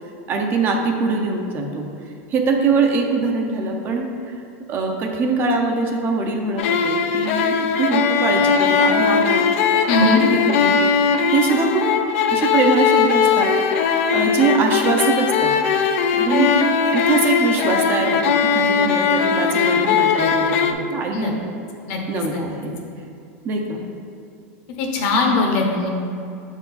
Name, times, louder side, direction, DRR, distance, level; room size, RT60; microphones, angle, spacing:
voice 1, 0.3-1.9 2.3-4.3 4.7-9.5 10.0-10.8 11.3-11.9 12.3-15.5 16.1-16.5 16.9-21.5 22.1-22.8 23.4-23.9, right 4 dB, 30° right, 2 dB, 0.6 m, -22 dB
sound 1, 6.6-20.7, left 6 dB, 70° left, 0.5 m, -19 dB
voice 2, 9.9-10.2 21.1-21.3 21.9-22.0 22.3-22.4 24.8-25.9, left 2 dB, 50° left, 2 dB, 1.0 m, -20 dB
6.4 x 4.5 x 4.0 m, 2.6 s
supercardioid pair, 150°, 8 cm